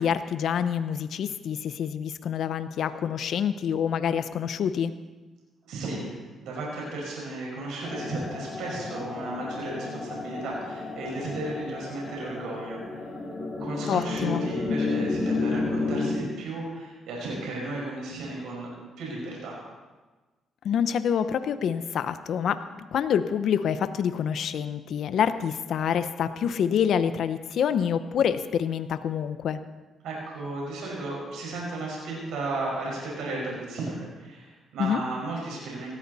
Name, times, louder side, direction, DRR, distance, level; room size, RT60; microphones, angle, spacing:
voice 1, 0.0-4.9 13.9-14.4 20.6-29.6 34.8-35.0, left 8 dB, 70° left, 11 dB, 0.8 m, -27 dB
voice 2, 5.6-6.1 6.4-13.1 13.6-19.6 30.0-35.9, right 2 dB, 80° right, -3 dB, 5.5 m, -34 dB
sound 1, 7.8-16.2, left 3 dB, 35° left, 4.9 m, -31 dB
18.0 x 14.5 x 4.2 m, 1.2 s
cardioid pair, 90°, 0 cm